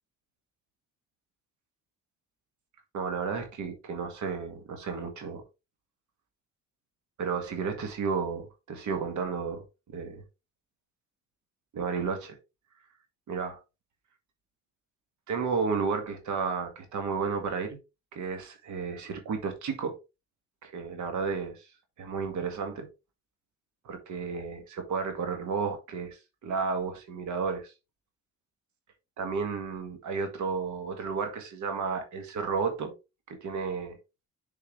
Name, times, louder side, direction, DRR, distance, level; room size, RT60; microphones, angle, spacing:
voice 1, 2.9-5.4 7.2-10.2 11.7-12.4 13.3-13.6 15.3-17.8 18.1-19.9 20.6-21.7 22.0-22.9 23.9-27.7 29.2-32.9 33.3-34.0, right 5 dB, 75° right, 1.9 m, -32 dB
7.2 x 4.6 x 3.2 m
cardioid pair, 90°, 30 cm